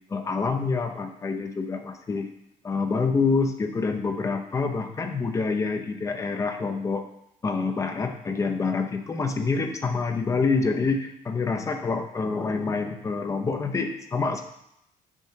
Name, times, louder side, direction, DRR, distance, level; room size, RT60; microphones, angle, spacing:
voice 1, 0.1-2.3 2.6-7.0 7.4-14.4, left 4 dB, 20° left, 6 dB, 0.6 m, -27 dB
7.1 x 2.8 x 5.6 m, 0.79 s
cardioid pair, 145°, 15 cm